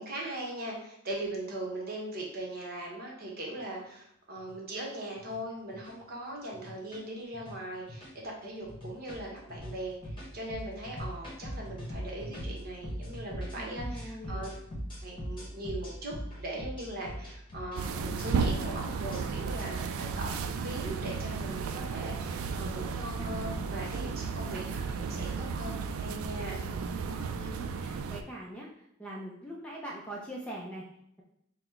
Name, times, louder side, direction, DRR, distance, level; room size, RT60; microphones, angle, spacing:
voice 1, 0.0-14.5 15.0-26.6, right 1 dB, 45° right, -2 dB, 1.0 m, -40 dB
sound 1, 3.6-3.7 4.4-4.8 5.2-5.4 5.7-5.9 6.5-7.0 7.3-7.6 7.9-8.3 8.6-19.6, equal, 25° left, 1.0 m, -40 dB
voice 2, 13.6-14.5 26.6-30.9, right 1 dB, 5° left, -3 dB, 0.5 m, -43 dB
sound 2, 17.8-28.2, right 5 dB, 80° right, 0.3 m, -34 dB
4.0 x 2.1 x 4.4 m, 0.73 s
head